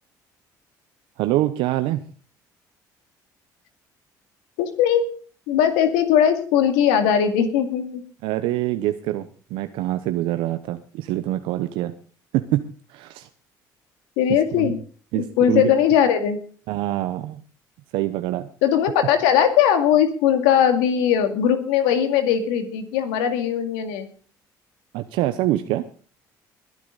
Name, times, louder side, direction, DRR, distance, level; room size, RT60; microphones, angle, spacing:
voice 1, 1.2-2.0 8.2-11.9 12.3-12.6 12.9-13.3 14.5-14.7 15.1-15.7 16.7-17.4 17.9-18.5 24.9-25.8, right 15 dB, 80° right, 9 dB, 0.9 m, -25 dB
voice 2, 4.6-5.1 5.5-8.0 14.2-14.8 15.1-16.4 18.6-24.1, left 9 dB, 85° left, 7 dB, 2.3 m, -19 dB
21.0 x 9.4 x 4.0 m, 0.41 s
supercardioid pair, 70°, 9 cm